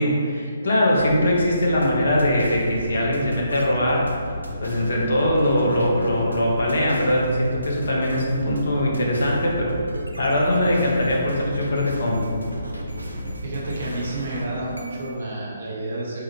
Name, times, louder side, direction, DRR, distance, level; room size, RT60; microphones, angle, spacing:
voice 1, 0.0-4.1 4.6-9.8 10.2-12.3, left 1 dB, 60° left, -2 dB, 0.6 m, -21 dB
sound 1, 0.9-14.2, equal, 10° left, 0.7 m, -35 dB
sound 2, 1.6-15.2, equal, 90° right, 0.4 m, -37 dB
voice 2, 13.4-16.2, right 2 dB, 55° right, -5 dB, 0.8 m, -30 dB
3.6 x 2.1 x 2.9 m, 2.2 s
figure-of-eight pair, 135°, 0 cm